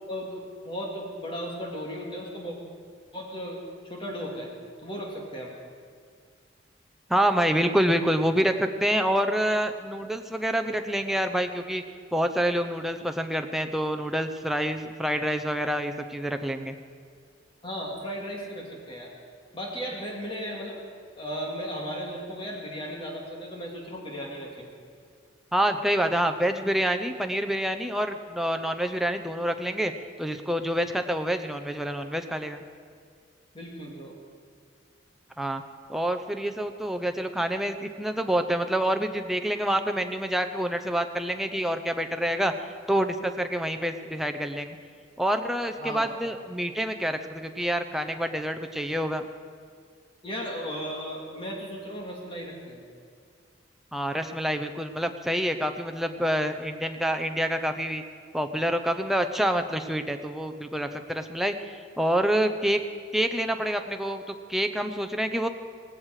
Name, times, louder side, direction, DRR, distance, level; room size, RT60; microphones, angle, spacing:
voice 1, 0.1-2.6 3.1-3.6 3.9-4.5 4.8-5.5 17.6-19.1 19.5-20.8 21.2-24.7 33.5-34.1 45.8-46.1 50.2-52.8, equal, 30° left, -1 dB, 2.3 m, -35 dB
voice 2, 7.1-11.8 12.1-16.7 25.5-29.9 30.2-32.6 35.4-35.6 35.9-42.5 42.9-44.8 45.2-49.2 53.9-58.0 58.3-62.8 63.1-65.5, equal, ahead, 6 dB, 0.7 m, -27 dB
17.5 x 16.5 x 4.9 m, 2.1 s
head